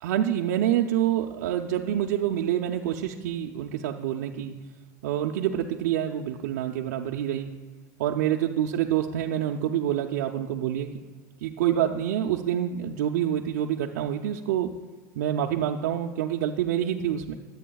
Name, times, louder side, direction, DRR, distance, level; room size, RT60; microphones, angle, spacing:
voice 1, 0.0-4.5 5.0-7.5 8.0-10.9 11.4-14.7 15.1-17.3, right 10 dB, 75° right, 1 dB, 0.6 m, -27 dB
22.0 x 8.3 x 2.3 m, 1.4 s
hypercardioid pair, 100°, 9 cm